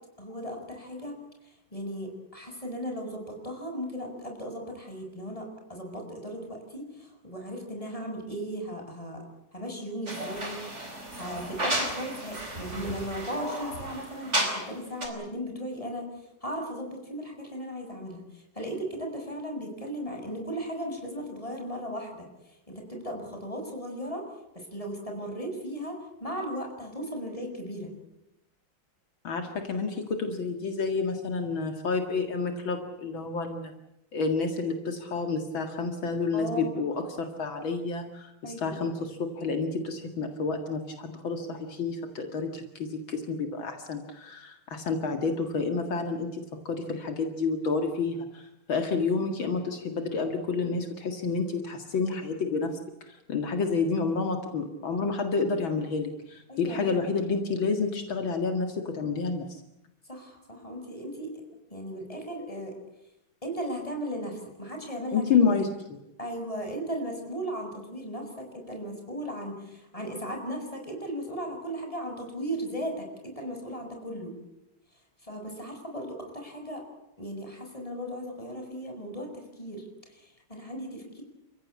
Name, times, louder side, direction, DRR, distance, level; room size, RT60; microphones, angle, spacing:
voice 1, 0.2-1.2 1.7-9.2 9.5-10.8 11.1-16.1 16.4-22.3 22.7-24.3 24.5-27.9 36.3-36.7 38.4-38.9 56.5-57.1 60.1-61.4 61.7-62.7 63.4-65.2 66.2-74.4 75.2-76.8 77.2-81.2, equal, 15° left, 3 dB, 6.7 m, -36 dB
sound 1, 10.1-14.8 15.0-15.1, right 1 dB, 30° right, 4.9 m, -33 dB
voice 2, 29.2-33.7 34.1-52.8 53.1-59.6 65.1-66.0, left 4 dB, 70° left, 5 dB, 2.7 m, -29 dB
30.0 x 16.0 x 8.5 m, 0.86 s
omnidirectional pair, 2.3 m